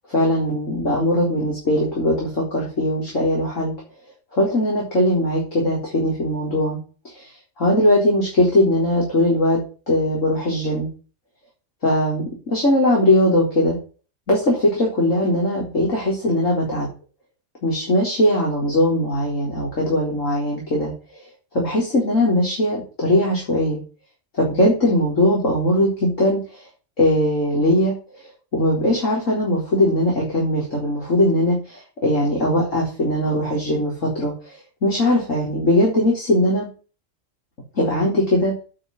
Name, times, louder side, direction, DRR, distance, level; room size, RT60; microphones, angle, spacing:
voice 1, 0.1-3.7 4.3-6.8 7.1-7.3 7.6-9.6 9.9-10.9 11.8-13.8 14.3-16.9 17.6-20.9 21.5-23.8 24.4-26.4 27.0-27.9 28.5-34.3 34.8-36.7 37.8-38.5, left 1 dB, 70° left, -3 dB, 4.3 m, -20 dB
8.4 x 8.3 x 7.5 m, 0.36 s
omnidirectional pair, 1.4 m